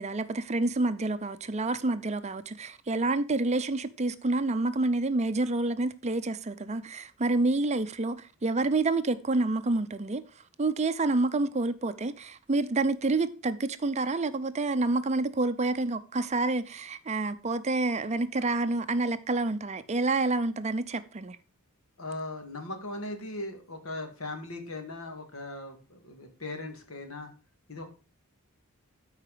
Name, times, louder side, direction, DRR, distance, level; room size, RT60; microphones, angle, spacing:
voice 1, 0.0-10.2 10.6-21.4, right 2 dB, 30° right, 0.5 m, -28 dB
voice 2, 22.0-27.3 27.7-27.9, left 2 dB, 70° left, 2.3 m, -39 dB
13.0 x 4.9 x 5.0 m
head